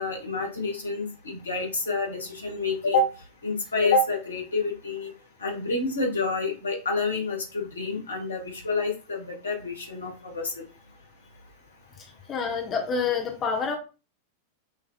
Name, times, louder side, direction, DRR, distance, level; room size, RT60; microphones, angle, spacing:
voice 1, 0.0-3.1 3.4-5.1 5.4-10.5, left 3 dB, 75° left, 1.3 m, -28 dB
voice 2, 12.3-13.8, left 5 dB, 30° left, 0.8 m, -27 dB
5.7 x 2.8 x 2.3 m
figure-of-eight pair, 90°, 0 cm